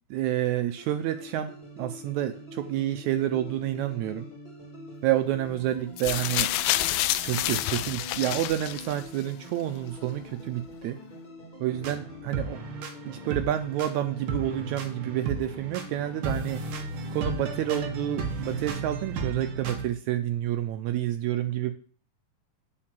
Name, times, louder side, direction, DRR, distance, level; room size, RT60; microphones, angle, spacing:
voice 1, 0.1-1.5 1.8-4.3 5.0-6.5 7.2-11.0 11.6-12.6 13.0-16.6 17.1-21.7, right 12 dB, 85° right, 9 dB, 1.7 m, -29 dB
sound 1, 0.8-18.9, equal, 15° left, 2.4 m, -45 dB
sound 2, 6.0-9.2 10.1-10.2, left 14 dB, 90° left, 2.3 m, -28 dB
sound 3, 11.7-19.9, right 3 dB, 65° right, 1.3 m, -34 dB
8.8 x 4.8 x 7.5 m, 0.42 s
omnidirectional pair, 3.9 m